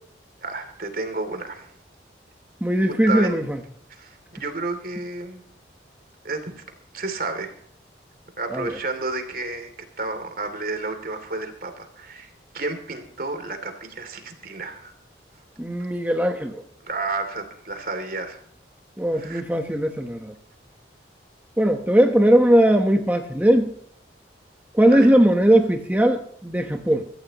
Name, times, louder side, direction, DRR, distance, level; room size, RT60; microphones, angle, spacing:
voice 1, 0.4-1.7 3.1-3.3 3.9-5.4 6.2-6.6 6.9-7.5 8.4-9.7 10.0-14.9 16.8-18.4 19.1-19.4 24.9-25.1, right 3 dB, 50° right, 7 dB, 2.9 m, -31 dB
voice 2, 2.6-3.6 8.5-8.8 15.6-16.6 19.0-20.3 21.6-23.7 24.7-27.1, right 1 dB, 10° right, 3 dB, 1.1 m, -19 dB
23.0 x 14.5 x 3.0 m, 0.64 s
head